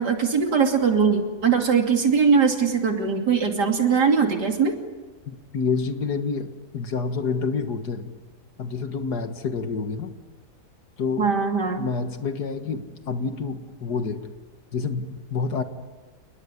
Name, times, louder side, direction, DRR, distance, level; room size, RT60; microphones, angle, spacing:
voice 1, 0.0-4.8 11.2-11.9, right 6 dB, 75° right, 3 dB, 3.4 m, -21 dB
voice 2, 5.3-8.1 8.6-10.2 11.0-11.3 11.8-14.3 14.7-15.6, left 5 dB, 70° left, 8 dB, 2.2 m, -28 dB
29.5 x 19.5 x 9.8 m, 1.3 s
omnidirectional pair, 1.8 m